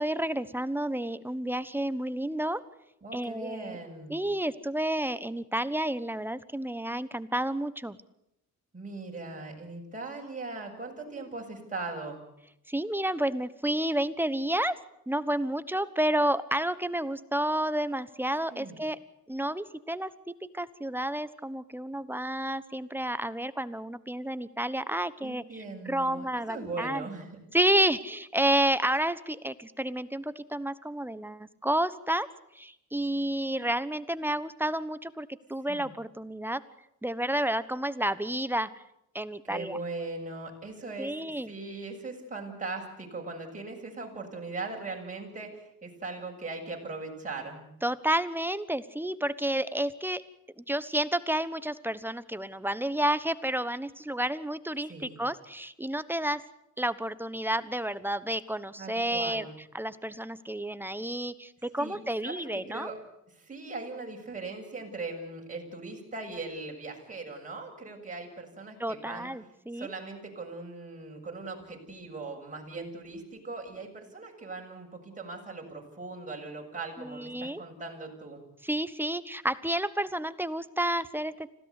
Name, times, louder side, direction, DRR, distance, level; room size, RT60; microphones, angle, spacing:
voice 1, 0.0-2.6 3.1-3.8 4.1-8.0 12.7-19.0 19.3-20.1 20.5-27.1 27.5-32.3 32.5-36.6 37.0-38.8 39.1-39.8 41.0-41.5 47.8-50.2 50.6-56.4 56.8-59.5 59.7-62.9 68.8-69.9 77.0-77.6 78.6-81.5, right 1 dB, 5° right, 14 dB, 1.2 m, -30 dB
voice 2, 3.0-4.2 8.7-12.2 18.5-18.8 25.2-27.4 35.7-35.9 39.4-47.7 54.9-55.2 58.8-59.5 61.8-62.0 62.2-63.0 63.3-69.3 69.7-78.4, right 3 dB, 25° right, 0 dB, 7.2 m, -39 dB
26.0 x 16.5 x 8.4 m, 0.80 s
cardioid pair, 90°, 30 cm